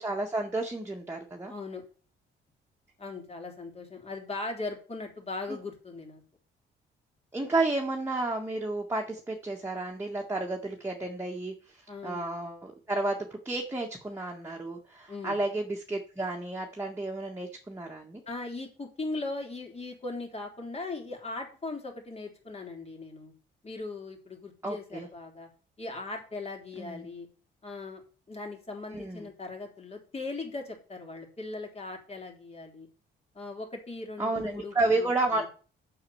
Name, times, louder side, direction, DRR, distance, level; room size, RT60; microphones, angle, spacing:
voice 1, 0.0-1.5 7.3-18.2 24.6-25.1 26.8-27.1 28.9-29.3 34.2-35.5, right 2 dB, 10° right, 0 dB, 1.8 m, -31 dB
voice 2, 1.5-1.8 3.0-6.2 11.9-12.2 15.1-15.4 18.3-23.3 23.6-25.5 25.8-27.3 27.6-28.0 28.3-32.9 33.3-35.5, left 3 dB, 30° left, 2 dB, 3.7 m, -39 dB
7.9 x 6.9 x 7.1 m, 0.39 s
cardioid pair, 90°, 20 cm